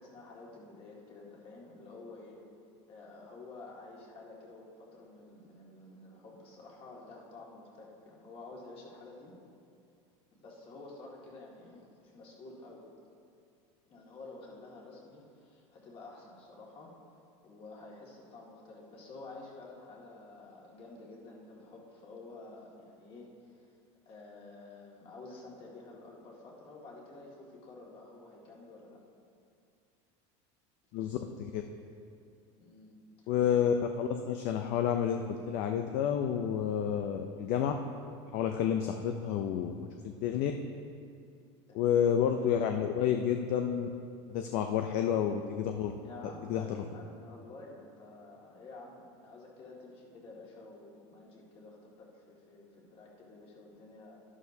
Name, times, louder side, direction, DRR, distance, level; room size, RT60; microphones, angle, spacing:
voice 1, 0.0-2.4 2.9-9.3 10.4-12.9 13.9-16.9 17.4-23.7 24.1-29.0 32.6-33.3 41.7-42.0 46.0-54.2, left 3 dB, 35° left, -3 dB, 2.1 m, -50 dB
voice 2, 30.9-31.6 33.3-37.7 38.3-40.5 41.7-43.9 44.3-45.9 46.5-46.8, left 8 dB, 55° left, 5 dB, 0.6 m, -30 dB
11.5 x 11.0 x 2.8 m, 2.4 s
supercardioid pair, 145°, 15 cm